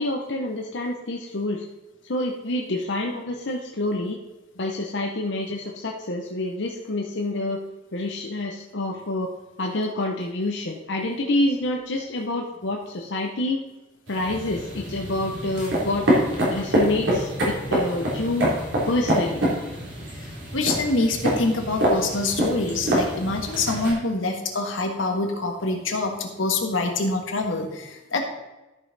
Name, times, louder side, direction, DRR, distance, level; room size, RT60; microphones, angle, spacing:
voice 1, 0.0-1.6 2.0-4.2 4.6-7.6 7.9-9.3 9.6-13.6 14.1-16.1 16.5-18.5 18.8-19.4, left 2 dB, 65° left, 0 dB, 0.8 m, -27 dB
sound 1, 14.1-23.9, equal, 70° right, 3.0 m, -26 dB
voice 2, 20.5-28.2, left 2 dB, 90° left, 3 dB, 1.5 m, -25 dB
13.0 x 5.6 x 4.0 m, 1.1 s
head